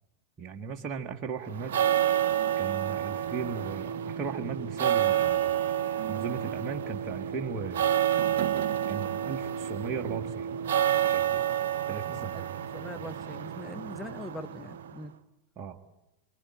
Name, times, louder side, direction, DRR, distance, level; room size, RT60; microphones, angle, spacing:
voice 1, 0.4-1.8 2.6-5.8 6.1-8.0 8.9-10.5 11.0-11.4 11.9-12.3 15.6-15.8, right 5 dB, 30° right, 1.5 m, -37 dB
sound 1, 1.5-15.0, right 10 dB, 60° right, 1.2 m, -29 dB
voice 2, 12.3-15.1, left 1 dB, 10° left, 0.9 m, -42 dB
25.5 x 24.5 x 8.8 m
figure-of-eight pair, 90°, 0 cm